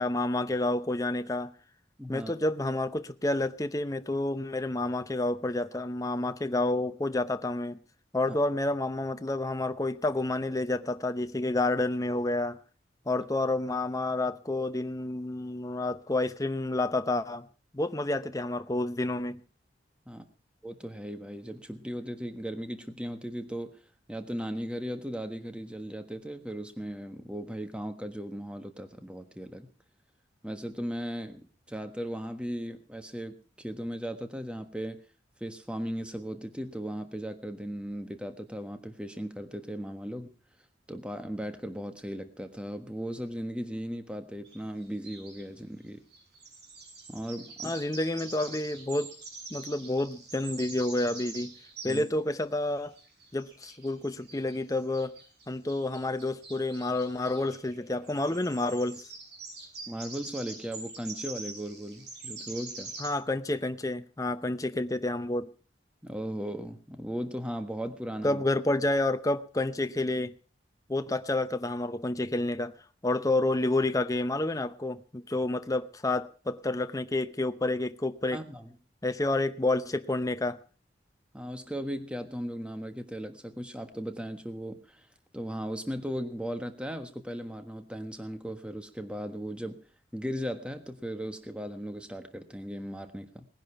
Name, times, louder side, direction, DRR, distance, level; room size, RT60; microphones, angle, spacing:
voice 1, 0.0-1.5 2.1-7.8 8.1-12.6 13.1-17.5 17.7-19.4 47.6-49.1 49.5-51.5 51.8-52.9 53.3-55.2 55.5-59.1 63.0-65.5 68.2-70.3 70.9-72.7 73.0-78.4 79.0-80.6, left 2 dB, 20° left, 0.7 m, -29 dB
voice 2, 2.0-2.3 8.3-8.4 20.1-20.2 20.6-23.7 24.1-29.7 30.4-35.0 35.4-40.3 40.9-46.0 47.1-47.7 51.8-52.1 59.9-62.9 66.0-68.4 78.3-78.7 81.3-85.1 85.3-89.8 90.1-93.5, equal, 5° right, 1.4 m, -37 dB
sound 1, 44.5-44.6 44.8-45.4 46.1-52.1 52.5-63.1, right 3 dB, 60° right, 7.1 m, -44 dB
19.0 x 10.5 x 5.8 m
head